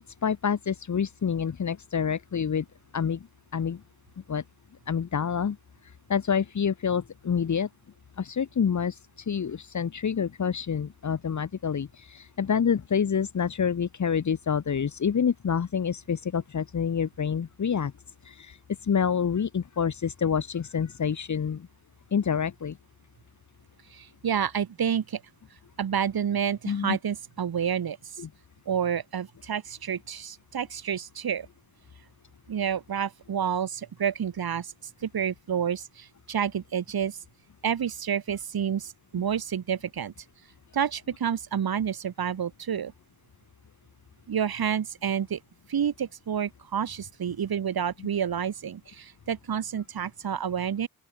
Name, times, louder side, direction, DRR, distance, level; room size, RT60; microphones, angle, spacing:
voice 1, 0.2-2.7 2.9-3.3 3.5-3.8 4.3-4.4 4.9-5.6 6.1-7.7 8.2-17.9 18.3-18.6 18.8-21.7 22.1-22.8 26.7-27.0 28.2-28.3, left 7 dB, 55° left, 1.7 m, -27 dB
voice 2, 23.9-25.2 25.8-28.0 28.7-31.5 32.5-34.7 35.0-37.2 37.6-40.1 40.7-42.9 44.3-45.4 45.7-50.9, right 8 dB, 85° right, 7.6 m, -29 dB
open air
wide cardioid pair, 120°, 36 cm